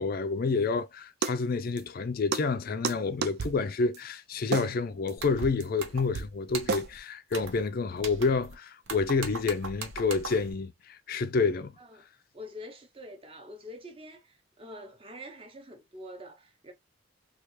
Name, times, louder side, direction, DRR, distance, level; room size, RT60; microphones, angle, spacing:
voice 1, 0.0-11.7, left 4 dB, 45° left, 0.4 m, -29 dB
sound 1, 1.2-1.3 1.8-1.9 2.3-2.4 2.8-3.0 3.2-3.6 3.9-4.0 4.5-4.7 5.1-5.2 5.4-5.6 6.1-6.3 6.7-6.9, right 5 dB, 55° right, 0.4 m, -30 dB
sound 2, 5.2-5.4 5.8-6.2 6.5-7.0 7.3-7.6 8.0-8.5 8.9-10.5, right 4 dB, 80° right, 0.8 m, -40 dB
voice 2, 12.3-16.7, left 1 dB, 25° right, 0.8 m, -46 dB
3.2 x 2.4 x 3.1 m
head